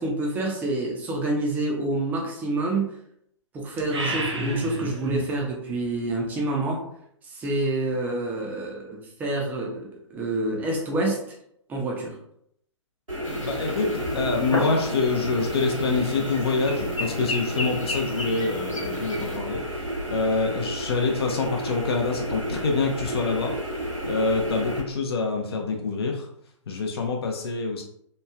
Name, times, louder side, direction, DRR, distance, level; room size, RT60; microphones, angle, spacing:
voice 1, 0.0-3.0 3.5-6.8 7.2-11.2 11.7-12.2, right 2 dB, 10° right, -1 dB, 0.4 m, -27 dB
sound 1, 3.8-5.4, right 1 dB, 60° right, 0.6 m, -30 dB
sound 2, 13.1-24.8, right 1 dB, 90° right, 1.2 m, -31 dB
sound 3, 13.2-19.4, left 2 dB, 80° left, 0.8 m, -33 dB
voice 2, 13.4-23.5 24.0-26.3 26.7-27.8, left 4 dB, 50° left, 2 dB, 0.4 m, -26 dB
3.0 x 2.2 x 2.3 m, 0.72 s
figure-of-eight pair, 120°, 16 cm